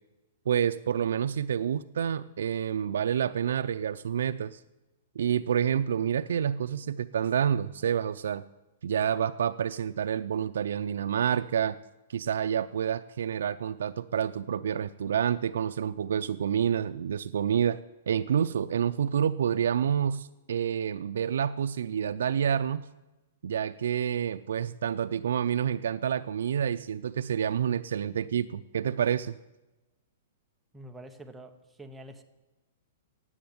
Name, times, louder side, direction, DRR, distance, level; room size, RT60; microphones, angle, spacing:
voice 1, 0.5-4.6 5.2-8.4 8.8-11.8 12.1-17.8 18.1-22.8 23.4-29.4, right 8 dB, 80° right, 10 dB, 0.5 m, -28 dB
voice 2, 30.7-32.2, right 1 dB, 5° right, 5 dB, 1.0 m, -46 dB
17.0 x 7.9 x 9.5 m, 1.1 s
hypercardioid pair, 160°, 0 cm